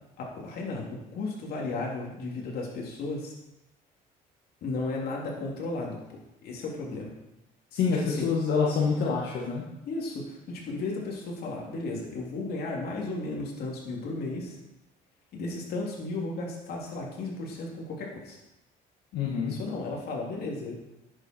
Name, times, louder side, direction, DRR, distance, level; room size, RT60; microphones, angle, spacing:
voice 1, 0.2-3.3 4.6-7.1 8.0-8.3 9.9-14.6 15.3-18.4 19.5-20.7, left 2 dB, 65° left, -2 dB, 3.2 m, -34 dB
voice 2, 7.7-9.6 19.1-19.5, left 5 dB, 80° left, -3 dB, 1.9 m, -26 dB
10.5 x 8.3 x 4.6 m, 0.92 s
cardioid pair, 110°, 17 cm